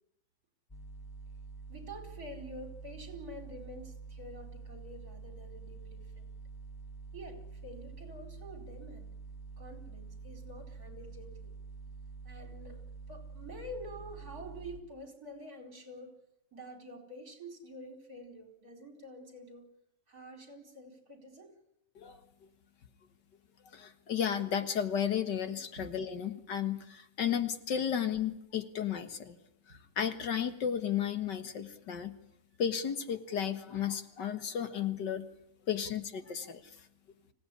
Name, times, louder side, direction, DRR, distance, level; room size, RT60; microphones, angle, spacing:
sound 1, 0.7-14.8, right 4 dB, 15° left, 1.6 m, -47 dB
voice 1, 1.7-6.3 7.1-9.1 9.6-11.5 12.2-16.2 16.5-19.7 20.1-21.6 25.8-25.9, equal, 60° right, 4 dB, 5.1 m, -48 dB
voice 2, 23.7-29.4 30.0-32.2 32.6-35.3 35.7-36.6, left 8 dB, 85° left, 10 dB, 2.2 m, -33 dB
25.0 x 17.0 x 9.9 m, 0.82 s
omnidirectional pair, 1.8 m